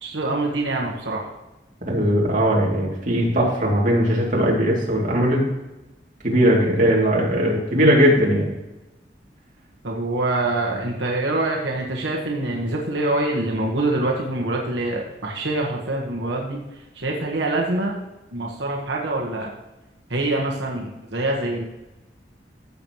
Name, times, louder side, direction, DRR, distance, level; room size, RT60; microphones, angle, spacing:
voice 1, 0.0-1.3 9.8-16.6 16.9-17.9 18.3-19.5 20.1-21.6, right 2 dB, 85° right, -1 dB, 1.4 m, -25 dB
voice 2, 1.8-5.5 6.2-8.5, equal, 45° right, -3 dB, 2.8 m, -19 dB
15.0 x 7.1 x 3.1 m, 1.0 s
head